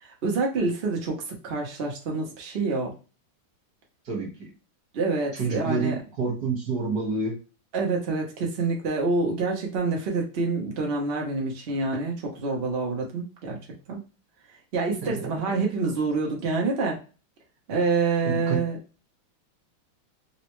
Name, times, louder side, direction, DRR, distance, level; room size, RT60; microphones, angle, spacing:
voice 1, 0.0-2.9 4.9-6.0 7.7-13.6 13.9-14.0 14.7-17.0 17.7-18.8, right 3 dB, 80° right, 0 dB, 0.5 m, -27 dB
voice 2, 5.3-7.3 15.0-15.6 18.2-18.6, right 4 dB, 50° right, -1 dB, 1.6 m, -28 dB
4.0 x 2.1 x 3.0 m, 0.34 s
omnidirectional pair, 2.3 m